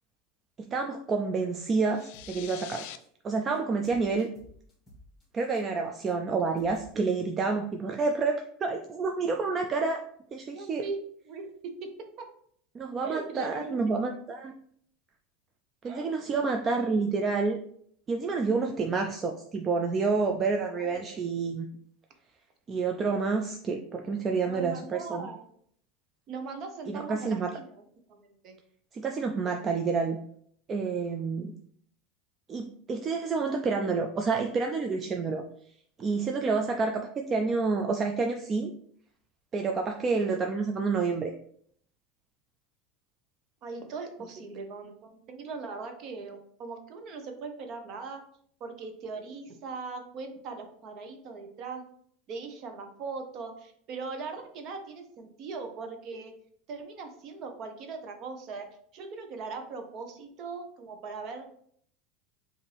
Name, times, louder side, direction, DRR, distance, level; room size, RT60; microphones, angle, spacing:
voice 1, 0.6-2.9 3.2-4.3 5.3-10.0 10.3-10.8 12.7-14.5 15.8-17.6 18.1-21.7 22.7-25.3 26.9-27.5 28.9-30.2 30.7-31.5 32.5-35.4 36.0-38.7 39.5-41.3, right 4 dB, 25° right, 4 dB, 0.3 m, -29 dB
sound 1, 1.8-3.0, left 12 dB, 65° left, 0.3 m, -44 dB
sound 2, 2.0-2.6 2.8-3.1 3.3-3.6 3.8-5.6 6.1-6.2 6.6-6.9, equal, 10° left, 1.6 m, -54 dB
voice 2, 10.5-11.0 11.3-11.9 12.2-12.3 13.0-13.7 15.8-16.1 16.8-16.9 20.7-21.2 24.4-25.5 26.3-27.7 28.1-28.6 43.6-48.2 48.6-51.8 52.3-56.3 56.7-58.7 58.9-61.5, right 4 dB, 40° right, 5 dB, 0.7 m, -40 dB
5.0 x 2.6 x 3.3 m, 0.63 s
supercardioid pair, 145°, 0 cm